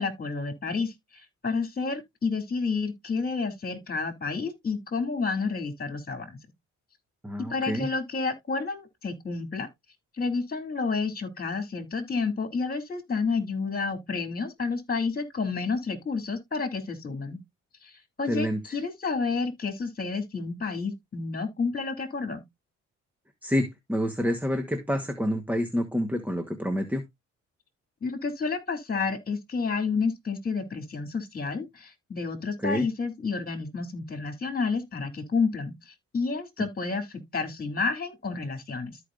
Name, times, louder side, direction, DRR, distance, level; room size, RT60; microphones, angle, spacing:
voice 1, 0.0-6.4 7.5-9.7 10.2-17.4 17.8-22.4 28.0-39.0, left 4 dB, 30° left, 2.6 m, -30 dB
voice 2, 7.2-7.9 18.3-18.6 23.4-27.0 32.6-32.8, equal, 5° right, 1.2 m, -28 dB
13.5 x 4.9 x 2.5 m
cardioid pair, 90°, 30 cm